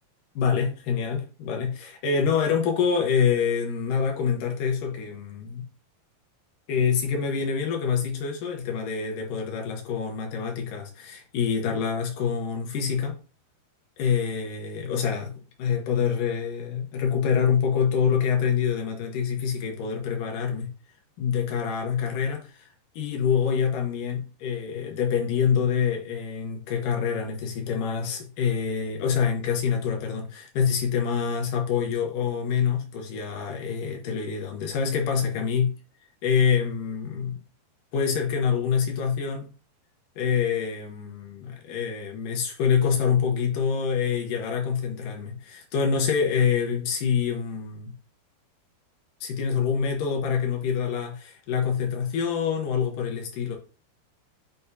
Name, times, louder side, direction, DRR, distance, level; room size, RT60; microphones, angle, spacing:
voice 1, 0.4-5.6 6.7-13.2 14.0-15.3 15.6-20.7 21.2-22.5 23.0-35.7 36.2-37.4 37.9-39.5 40.2-47.9 49.2-53.6, left 6 dB, 65° left, 2.3 m, -26 dB
8.8 x 5.3 x 2.8 m
omnidirectional pair, 5.0 m